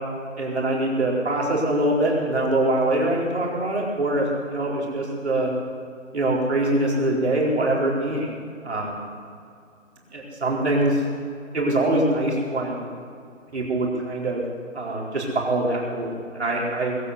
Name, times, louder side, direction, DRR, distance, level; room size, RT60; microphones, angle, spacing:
voice 1, 0.4-5.5 6.1-8.3 8.6-9.0 10.1-11.0 11.5-12.9 13.5-14.4 14.7-17.0, right 1 dB, 55° right, -3 dB, 4.5 m, -23 dB
20.5 x 8.3 x 7.9 m, 2.3 s
hypercardioid pair, 180°, 40 cm